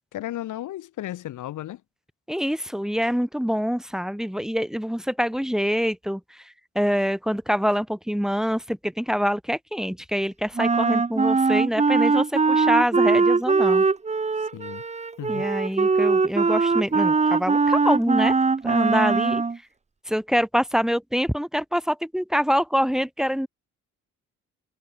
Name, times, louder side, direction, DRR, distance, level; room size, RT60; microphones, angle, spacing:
voice 1, 0.1-1.8 14.4-14.8 15.2-15.5, left 13 dB, 80° left, 6.3 m, -34 dB
voice 2, 2.3-6.4 6.8-13.8 15.3-18.4 18.6-19.4 20.1-23.5, equal, ahead, 3.7 m, -25 dB
Wind instrument woodwind instrument, 10.5-19.6, right 4 dB, 20° right, 1.2 m, -21 dB
cardioid pair, 90°, 30 cm